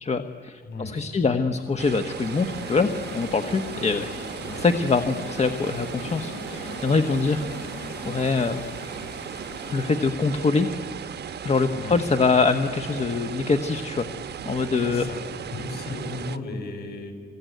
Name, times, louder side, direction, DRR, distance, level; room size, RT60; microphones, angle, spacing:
voice 1, 0.0-7.4 8.0-8.6 9.7-10.7 11.4-14.1 14.4-15.0, left 4 dB, 35° left, 8 dB, 1.2 m, -24 dB
voice 2, 0.6-1.3 4.4-4.7 11.7-12.0 14.8-15.2 15.5-17.1, left 2 dB, 55° left, 6 dB, 6.3 m, -35 dB
sound 1, 1.6-12.6, left 5 dB, 75° left, 5.4 m, -42 dB
sound 2, 1.8-16.4, right 8 dB, 55° right, 1.1 m, -37 dB
26.5 x 21.5 x 9.3 m, 2.2 s
cardioid pair, 90°, 20 cm